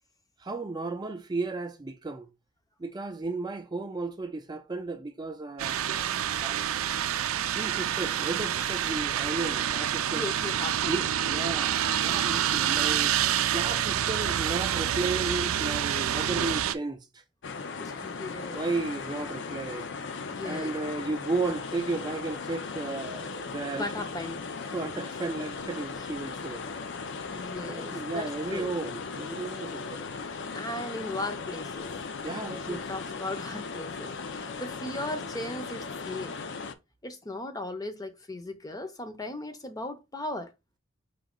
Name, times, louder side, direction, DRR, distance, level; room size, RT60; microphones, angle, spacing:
voice 1, 0.4-2.3 2.8-5.8 6.4-6.6 7.5-10.2 10.9-13.1 13.5-17.2 18.5-19.9 20.4-23.9 24.7-26.6 27.7-30.1 32.2-32.9, right 3 dB, 20° right, 0.4 m, -34 dB
sound 1, 5.6-16.7, right 10 dB, 85° right, 0.4 m, -27 dB
voice 2, 10.1-10.9 17.8-18.6 20.3-20.8 23.8-24.4 27.3-28.7 30.5-31.9 32.5-36.4 37.0-40.5, left 2 dB, 20° left, 0.6 m, -37 dB
sound 2, 17.4-36.7, left 4 dB, 60° left, 0.5 m, -37 dB
5.0 x 2.8 x 3.7 m
head